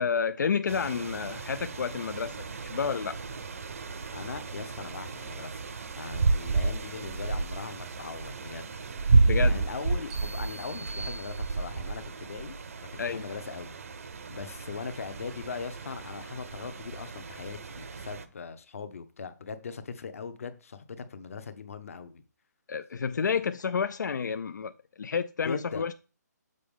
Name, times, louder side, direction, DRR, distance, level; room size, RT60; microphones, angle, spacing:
voice 1, 0.0-3.2 9.2-9.6 13.0-13.3 22.7-25.9, left 6 dB, 80° left, 0.4 m, -30 dB
sound 1, 0.7-18.2, right 3 dB, 50° right, 0.7 m, -31 dB
voice 2, 4.1-5.6 6.0-8.7 9.4-12.6 13.1-13.7 14.3-22.2 23.4-23.5 25.4-25.9, left 5 dB, 50° left, 0.8 m, -40 dB
sound 2, 10.1-12.0, right 3 dB, 5° right, 0.4 m, -44 dB
6.6 x 5.1 x 3.6 m
hypercardioid pair, 170°, 10 cm